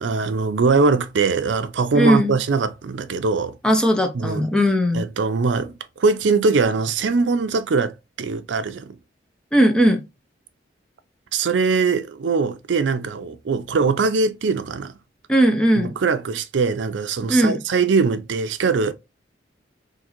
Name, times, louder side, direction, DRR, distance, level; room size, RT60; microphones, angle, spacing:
voice 1, 0.0-3.6 4.1-4.5 4.9-9.0 11.3-14.9 15.8-18.9, right 4 dB, 75° right, 0.5 m, -21 dB
voice 2, 1.9-2.4 3.6-5.1 9.5-10.0 15.3-16.0 17.3-17.6, equal, 5° left, 0.6 m, -18 dB
3.7 x 2.6 x 2.9 m
head